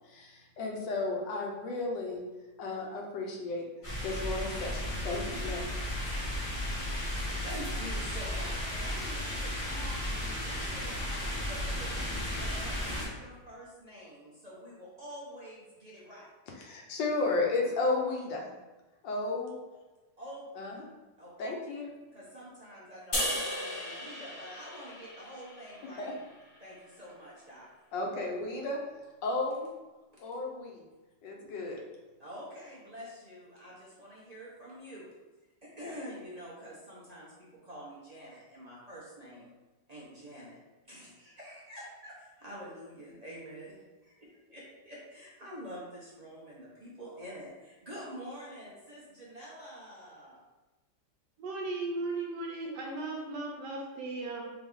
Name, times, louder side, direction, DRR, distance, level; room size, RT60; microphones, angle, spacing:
voice 1, 0.0-2.2 2.6-3.7 4.0-5.6 16.6-18.5 19.0-19.5 20.6-20.7 21.4-22.0 26.0-26.1 27.9-28.8 29.2-29.7 30.2-30.8 31.2-31.8, left 3 dB, 90° left, 0 dB, 1.5 m, -33 dB
sound 1, 3.8-13.0, left 1 dB, 20° left, 1.4 m, -34 dB
voice 2, 7.2-11.9 12.4-16.3 20.2-20.9 21.2-21.3 22.1-26.1 26.6-27.7 32.2-35.1 35.6-39.5 39.9-40.6 40.8-43.8 44.0-50.4, equal, 50° right, -7 dB, 0.4 m, -47 dB
sound 2, 23.1-26.4, left 1 dB, 50° left, 0.3 m, -36 dB
voice 3, 51.4-54.5, right 2 dB, 75° right, -1 dB, 1.2 m, -36 dB
3.6 x 3.5 x 3.5 m, 1.2 s
omnidirectional pair, 1.9 m